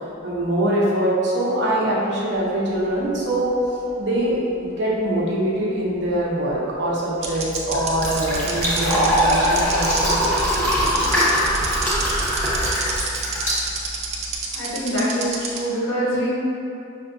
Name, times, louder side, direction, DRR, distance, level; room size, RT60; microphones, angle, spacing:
voice 1, 0.2-3.5 4.0-10.2 10.5-10.7, right 1 dB, 60° right, -5 dB, 0.8 m, -23 dB
sound 1, 2.7-4.3 4.5-4.6 6.5-6.6 7.2-15.6, right 6 dB, 35° right, 0.4 m, -29 dB
Fill (with liquid), 7.2-14.3, equal, 15° left, 1.0 m, -22 dB
voice 2, 14.5-16.3, equal, 80° left, -8 dB, 1.2 m, -24 dB
5.6 x 2.6 x 2.6 m, 2.7 s
head